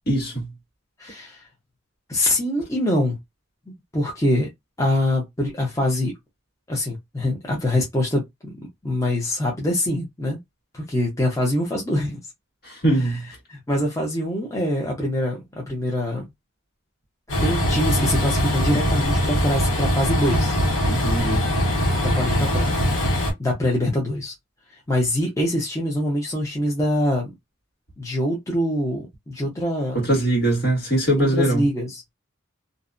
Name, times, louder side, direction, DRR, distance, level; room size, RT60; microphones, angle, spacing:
voice 1, 0.1-0.5 12.6-13.3 20.8-21.4 29.9-31.6, right 1 dB, 50° left, 1.5 m, -22 dB
voice 2, 1.0-1.4 2.1-3.2 3.9-4.5 4.8-6.1 6.7-10.4 10.7-12.2 13.5-16.2 17.4-20.6 22.0-22.7 23.4-24.3 24.9-27.3 28.0-30.0 31.2-32.1, left 1 dB, 15° left, 0.7 m, -24 dB
Train, 17.3-23.3, equal, 80° left, 1.0 m, -22 dB
2.6 x 2.2 x 2.5 m
head